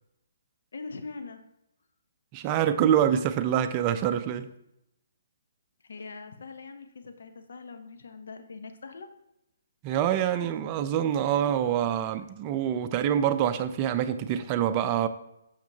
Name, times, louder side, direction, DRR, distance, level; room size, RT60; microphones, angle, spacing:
voice 1, 0.7-1.4 5.8-9.1, left 4 dB, 70° left, 0.7 m, -42 dB
voice 2, 2.3-4.5 9.8-15.1, right 10 dB, 30° right, 0.4 m, -26 dB
6.6 x 5.8 x 2.8 m
hypercardioid pair, 145°, 0 cm